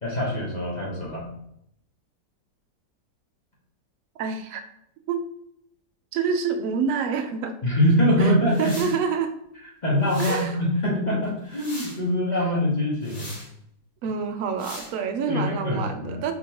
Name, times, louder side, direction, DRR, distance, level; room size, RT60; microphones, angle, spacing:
voice 1, 0.0-1.3 7.6-8.7 9.8-13.4 15.3-16.2, equal, 30° left, -5 dB, 1.0 m, -23 dB
voice 2, 4.2-4.6 5.1-5.2 6.1-7.6 8.2-8.3 8.6-9.3 10.2-10.6 12.4-12.5 14.0-16.3, right 6 dB, 80° right, 6 dB, 0.7 m, -27 dB
sound 1, 8.5-9.0 10.0-10.5 11.2-12.0 13.0-13.5 14.6-14.9, left 1 dB, 85° left, 2.4 m, -39 dB
4.2 x 3.7 x 2.9 m, 0.75 s
omnidirectional pair, 1.9 m